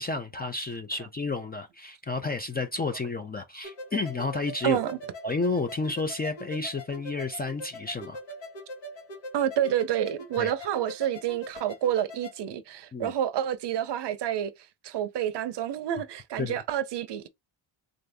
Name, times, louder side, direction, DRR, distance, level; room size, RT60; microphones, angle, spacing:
voice 1, 0.0-4.8 5.2-8.2 10.4-10.5 12.9-13.1 16.4-16.5, left 3 dB, 20° left, 0.3 m, -31 dB
sound 1, 3.6-12.4, left 1 dB, 65° left, 1.5 m, -42 dB
voice 2, 4.6-5.0 9.3-14.5 14.8-17.3, right 10 dB, 60° right, 0.6 m, -28 dB
3.8 x 2.6 x 3.4 m
wide cardioid pair, 155°, 48 cm